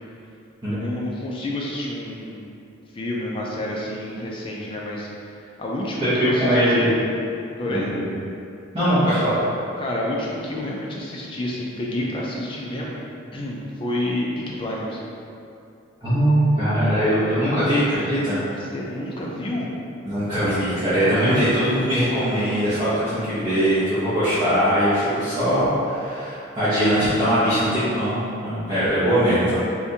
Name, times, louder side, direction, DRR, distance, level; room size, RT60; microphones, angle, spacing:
voice 1, 0.7-2.5 2.9-5.1 5.6-7.0 7.6-7.9 9.8-13.0 13.3-15.0 18.6-19.7 21.0-21.5, left 1 dB, 25° left, -3 dB, 0.4 m, -29 dB
voice 2, 6.0-6.9 7.6-8.0 8.7-9.4 16.0-18.4 20.0-29.5, equal, 25° right, -18 dB, 1.0 m, -21 dB
3.5 x 2.6 x 2.7 m, 2.6 s
head